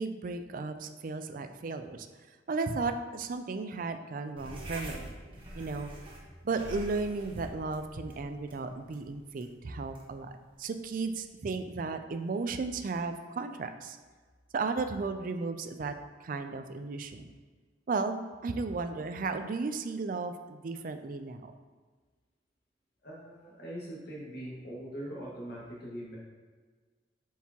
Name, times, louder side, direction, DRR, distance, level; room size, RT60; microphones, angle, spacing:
voice 1, 0.0-2.1 2.5-5.9 6.4-14.0 14.5-15.9 16.2-17.3 17.9-21.5, right 4 dB, 50° right, 8 dB, 0.4 m, -35 dB
sound 1, 4.4-11.2, right 1 dB, 30° right, 1.1 m, -46 dB
voice 2, 23.0-26.2, right 1 dB, 60° left, -5 dB, 1.8 m, -42 dB
6.9 x 4.7 x 2.9 m, 1.5 s
head